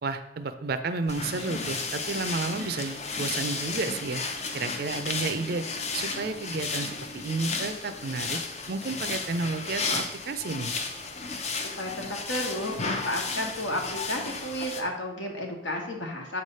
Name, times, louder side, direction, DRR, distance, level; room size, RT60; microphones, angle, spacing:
voice 1, 0.0-4.2 4.5-5.6 5.9-8.4 8.7-10.7, right 3 dB, 50° right, 10 dB, 0.4 m, -31 dB
sound 1, 1.1-14.8, left 4 dB, 35° left, 0.5 m, -33 dB
voice 2, 11.8-16.4, left 1 dB, 70° left, 1 dB, 1.3 m, -32 dB
7.0 x 3.3 x 5.4 m, 0.85 s
head